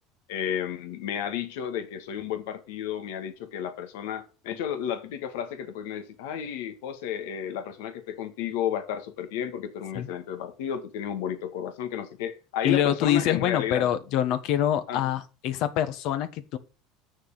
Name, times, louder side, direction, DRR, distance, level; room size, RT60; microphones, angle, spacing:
voice 1, 0.3-13.9 14.9-15.1, left 9 dB, 85° left, 1.8 m, -32 dB
voice 2, 12.6-16.6, left 11 dB, 65° left, 1.2 m, -25 dB
7.8 x 6.6 x 6.5 m
supercardioid pair, 115°, 0 cm